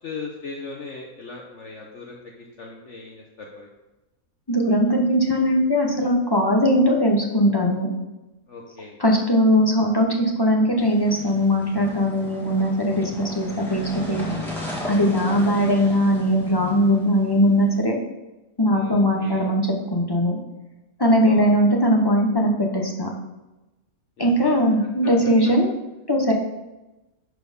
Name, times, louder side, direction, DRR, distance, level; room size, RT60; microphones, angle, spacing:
voice 1, 0.0-3.7 8.5-9.0 18.7-19.5 21.2-21.5 24.2-24.5, left 4 dB, 55° left, -1 dB, 1.2 m, -38 dB
voice 2, 4.5-7.9 9.0-14.2 14.9-18.0 18.6-20.4 21.0-23.1 24.2-25.7 26.1-26.3, equal, 20° left, 0 dB, 1.0 m, -20 dB
sound 1, 10.8-17.8, left 1 dB, ahead, 1.9 m, -35 dB
11.0 x 4.4 x 5.3 m, 1.0 s
omnidirectional pair, 1.6 m